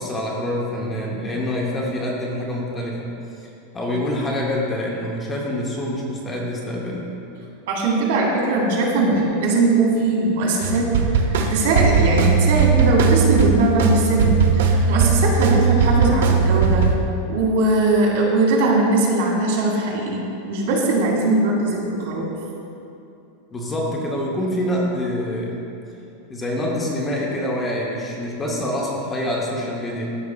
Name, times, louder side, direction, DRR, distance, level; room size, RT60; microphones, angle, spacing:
voice 1, 0.0-3.1 3.7-7.1 23.5-25.7 26.3-30.1, left 1 dB, 10° left, -3 dB, 0.7 m, -26 dB
voice 2, 7.7-10.9 11.2-16.9 17.3-22.3, right 2 dB, 60° right, -2 dB, 1.8 m, -20 dB
sound 1, 10.6-17.0, right 5 dB, 80° right, 0.7 m, -18 dB
13.0 x 6.0 x 2.2 m, 2.7 s
supercardioid pair, 175°, 0 cm